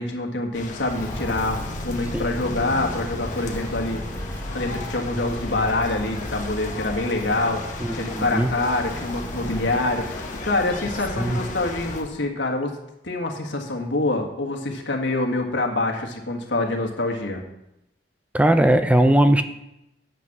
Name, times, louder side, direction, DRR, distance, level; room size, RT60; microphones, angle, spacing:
voice 1, 0.0-4.0 4.5-12.8 13.0-17.4, left 2 dB, 75° left, 2 dB, 1.8 m, -26 dB
sound 1, 0.5-12.0, left 3 dB, 45° left, 1.3 m, -37 dB
Walk footsteps, 0.9-12.1, left 1 dB, 10° left, 2.2 m, -35 dB
voice 2, 7.8-8.5 11.2-11.4 18.3-19.4, right 1 dB, 5° right, 9 dB, 0.4 m, -19 dB
9.4 x 7.9 x 6.1 m, 0.87 s
head